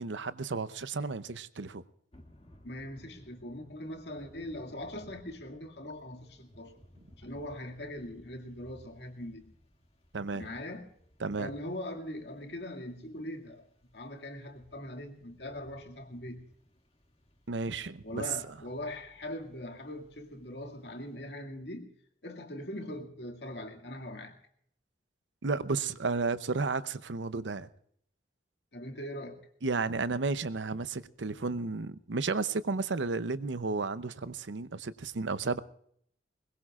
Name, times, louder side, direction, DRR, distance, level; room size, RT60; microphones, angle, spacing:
voice 1, 0.0-1.8 10.1-10.5 11.2-11.5 17.5-18.2 25.4-27.7 29.6-35.6, right 4 dB, 85° right, 0.7 m, -33 dB
Thunder / Rain, 2.1-21.2, equal, 35° left, 2.2 m, -60 dB
voice 2, 2.6-6.7 7.2-9.5 10.3-10.9 11.4-16.4 18.0-21.9 22.2-24.4 28.7-29.4, left 1 dB, 65° left, 2.1 m, -41 dB
21.5 x 21.0 x 2.4 m
head